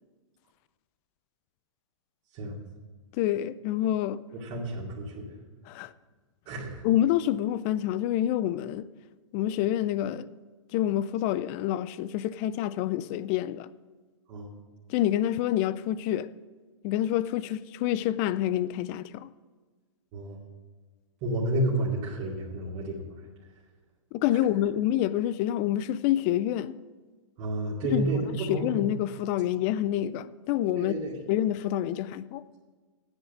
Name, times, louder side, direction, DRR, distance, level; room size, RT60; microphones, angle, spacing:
voice 1, 3.1-4.2 5.7-5.9 6.8-8.9 9.3-10.3 10.7-13.7 14.9-16.3 16.8-19.3 24.1-26.8 27.9-28.1 28.3-30.9 31.3-32.4, left 12 dB, 30° left, 0.3 m, -27 dB
voice 2, 4.3-5.3 6.5-6.8 14.3-14.5 20.1-20.4 21.2-23.1 27.4-28.8 30.7-31.1, right 1 dB, 35° right, 2.5 m, -31 dB
10.5 x 8.1 x 6.0 m
hypercardioid pair, 145°, 16 cm